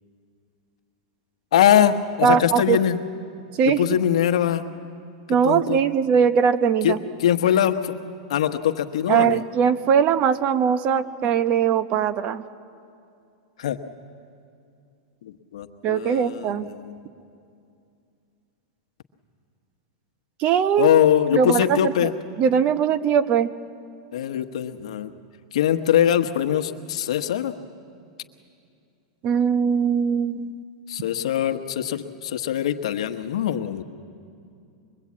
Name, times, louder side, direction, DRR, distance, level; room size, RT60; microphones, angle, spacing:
voice 1, 1.5-3.0 3.8-4.7 5.4-5.8 6.8-7.9 8.3-9.4 13.6-13.8 15.2-16.9 20.8-22.1 24.1-25.1 25.5-27.5 30.9-33.8, left 10 dB, 75° left, 7 dB, 1.2 m, -22 dB
voice 2, 2.2-2.8 3.5-3.8 5.3-7.0 9.1-12.4 15.8-16.7 20.4-20.9 21.3-22.1 22.4-23.5 29.2-30.6, right 7 dB, 40° right, 12 dB, 0.9 m, -20 dB
23.5 x 22.0 x 8.6 m, 2.5 s
hypercardioid pair, 130°, 3 cm